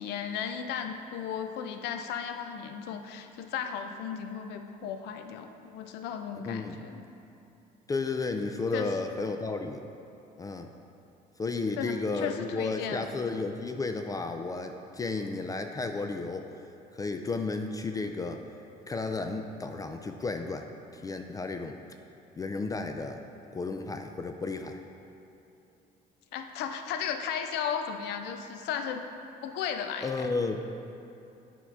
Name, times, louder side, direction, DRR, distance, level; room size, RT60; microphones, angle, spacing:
voice 1, 0.0-7.0 8.7-8.9 11.8-13.0 26.3-29.0 29.4-30.3, left 7 dB, 80° left, 7 dB, 0.5 m, -35 dB
voice 2, 6.5-6.8 7.9-9.8 10.4-10.7 11.4-16.5 16.9-18.4 18.9-20.7 21.0-21.7 22.4-23.2 23.5-24.8 30.0-30.7, left 3 dB, 20° left, 5 dB, 0.3 m, -33 dB
8.4 x 3.7 x 4.7 m, 2.8 s
cardioid pair, 110°, 17 cm